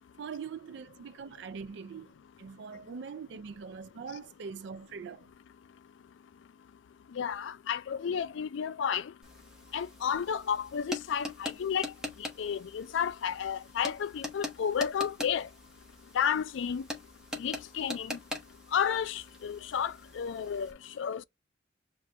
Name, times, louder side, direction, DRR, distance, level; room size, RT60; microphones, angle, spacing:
voice 1, 0.2-5.3 8.1-8.2, right 5 dB, 65° right, 0.4 m, -42 dB
voice 2, 7.1-9.1 9.7-11.9 12.2-15.5 16.1-16.9 17.4-18.2 18.7-21.2, left 7 dB, 75° left, 0.4 m, -32 dB
sound 1, 9.2-20.7, left 1 dB, 5° right, 1.0 m, -43 dB
7.2 x 2.5 x 2.2 m
head